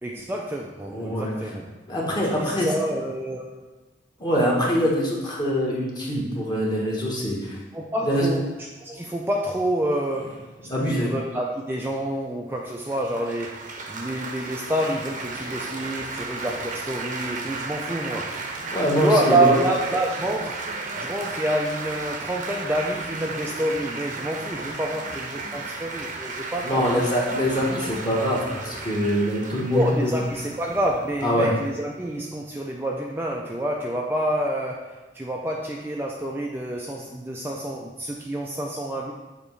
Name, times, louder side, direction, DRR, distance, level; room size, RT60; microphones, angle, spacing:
voice 1, 0.0-1.7 2.2-3.6 7.7-8.5 8.8-10.5 10.8-18.4 19.0-20.7 21.0-27.1 29.7-39.1, right 1 dB, 10° right, -1 dB, 0.4 m, -28 dB
voice 2, 0.9-1.3 1.9-2.7 4.2-7.6 8.0-8.3 10.7-11.1 18.7-19.6 26.6-30.2 31.2-31.5, equal, 25° left, -3 dB, 1.4 m, -24 dB
Laughter / Applause / Chatter, 12.9-32.0, right 3 dB, 45° right, 0.8 m, -34 dB
7.0 x 3.0 x 5.5 m, 1.2 s
head